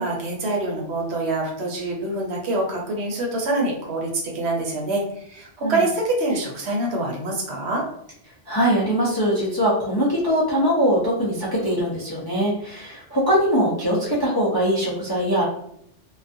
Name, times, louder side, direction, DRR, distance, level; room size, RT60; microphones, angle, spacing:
voice 1, 0.0-7.8, right 2 dB, 65° right, -1 dB, 0.9 m, -25 dB
voice 2, 8.5-15.4, equal, 35° left, -6 dB, 0.4 m, -22 dB
2.3 x 2.3 x 2.5 m, 0.71 s
omnidirectional pair, 1.2 m